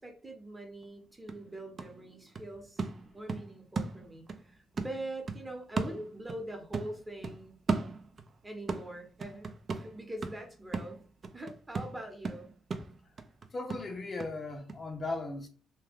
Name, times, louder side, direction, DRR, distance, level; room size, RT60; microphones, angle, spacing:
voice 1, 0.0-2.9 3.1-7.6 8.4-9.5 9.8-11.1 11.3-12.6, right 1 dB, 20° right, 0.9 m, -43 dB
sound 1, 0.8-0.9 1.3-4.4 4.8-6.5 6.7-8.3 8.7-14.3 14.7-14.8, right 4 dB, 45° right, 0.4 m, -37 dB
voice 2, 13.5-15.5, left 2 dB, 35° left, 0.5 m, -37 dB
2.2 x 2.2 x 3.4 m
cardioid pair, 90°, 0 cm